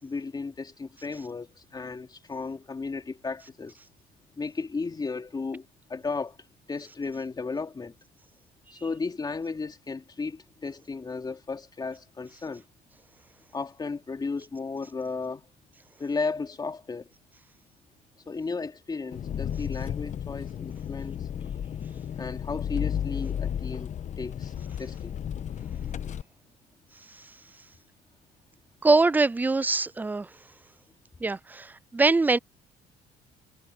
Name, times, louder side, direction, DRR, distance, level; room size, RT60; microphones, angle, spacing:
voice 1, 0.0-3.8 4.4-6.4 6.7-8.0 8.7-12.6 13.5-15.4 16.0-17.1 18.3-21.2 22.2-25.2, left 4 dB, 25° left, 2.9 m, -34 dB
Engine, 19.1-26.2, left 9 dB, 45° left, 1.2 m, -33 dB
voice 2, 28.8-30.3 31.2-32.4, right 3 dB, 10° right, 0.3 m, -23 dB
cardioid pair, 110°, 17 cm